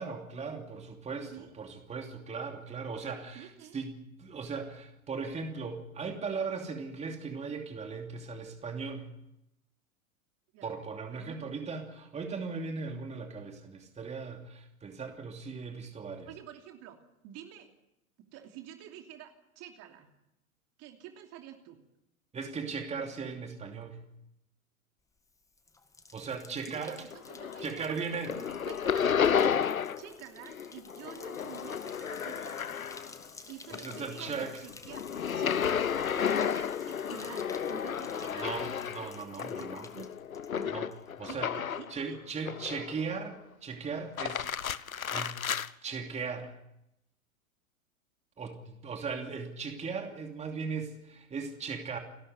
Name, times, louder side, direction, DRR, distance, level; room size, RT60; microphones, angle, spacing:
voice 1, 0.0-9.1 10.6-16.3 22.3-24.0 26.1-27.0 27.6-28.3 33.7-34.6 38.4-39.9 40.7-40.9 41.2-41.5 41.9-44.5 44.7-45.4 45.8-46.5 48.4-52.0, right 5 dB, 15° right, 4 dB, 2.8 m, -38 dB
voice 2, 3.0-3.8 10.5-10.7 11.1-11.6 16.3-17.7 18.2-20.1 20.8-21.8 26.6-32.7 33.5-34.3 34.6-35.1 35.3-38.6 39.4-40.1 40.5-40.8 41.2-42.2, right 11 dB, 35° right, 4 dB, 2.9 m, -49 dB
Bathtub (filling or washing), 25.2-41.3 41.5-42.1, left 3 dB, 5° left, 1.7 m, -53 dB
sound 1, 27.1-27.8 28.1-30.1 30.4-33.3 33.6-42.0 42.5-43.1 44.0-45.7, left 8 dB, 80° left, 0.9 m, -32 dB
29.5 x 13.0 x 9.5 m, 0.88 s
figure-of-eight pair, 100°, 42 cm